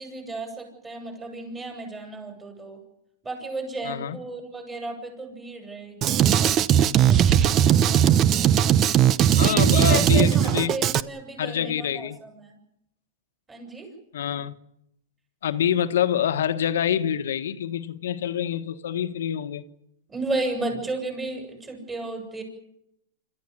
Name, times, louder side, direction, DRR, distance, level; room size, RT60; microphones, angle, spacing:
voice 1, 0.0-2.8 3.2-6.6 6.9-7.2 9.2-12.6 13.5-13.9 20.1-22.4, right 2 dB, 15° right, 7.2 m, -33 dB
voice 2, 3.8-4.2 9.4-10.8 11.4-12.2 14.1-14.5 15.4-19.6, left 9 dB, 80° left, 1.3 m, -26 dB
Drum kit, 6.0-11.0, right 10 dB, 30° right, 0.8 m, -19 dB
26.5 x 14.0 x 9.9 m
hypercardioid pair, 135°, 0 cm